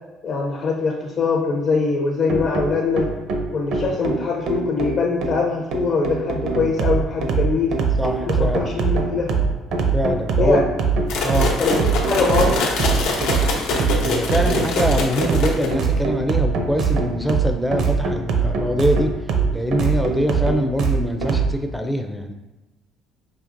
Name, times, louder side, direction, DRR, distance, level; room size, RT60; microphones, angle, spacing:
voice 1, 0.2-3.1 3.5-7.8 8.2-9.3 10.4-10.6 11.6-12.7, left 4 dB, 50° left, -2 dB, 0.5 m, -22 dB
sound 1, 2.3-21.5, right 5 dB, 60° right, 0.5 m, -23 dB
voice 2, 8.0-8.7 9.9-10.7 11.2-11.5 14.0-19.1 19.5-22.3, equal, ahead, 5 dB, 0.4 m, -23 dB
sound 2, 11.1-16.0, left 3 dB, 85° left, 0.7 m, -24 dB
5.1 x 2.8 x 2.5 m, 1.1 s
cardioid pair, 140°, 0 cm